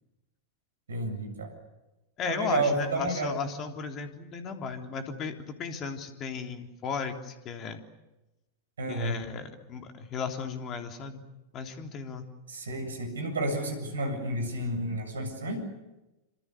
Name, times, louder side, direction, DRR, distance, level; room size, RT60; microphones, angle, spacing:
voice 1, 0.9-1.5 2.3-3.4 8.8-9.2 12.5-15.6, right 2 dB, 70° right, 6 dB, 7.6 m, -31 dB
voice 2, 2.2-7.8 8.9-11.2 11.5-12.3, left 5 dB, 30° left, 5 dB, 3.5 m, -35 dB
27.5 x 26.5 x 6.8 m, 1.0 s
figure-of-eight pair, 90°, 0 cm